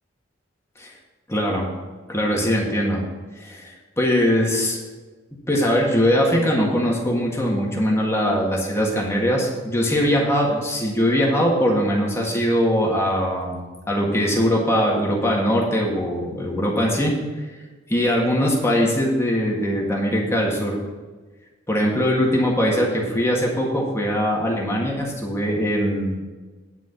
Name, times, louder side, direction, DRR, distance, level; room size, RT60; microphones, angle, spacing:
voice 1, 1.3-1.7 2.1-3.0 3.4-4.8 5.5-17.5 17.9-20.8 21.7-26.2, equal, 15° left, -2 dB, 1.8 m, -21 dB
9.8 x 5.0 x 8.1 m, 1.3 s
head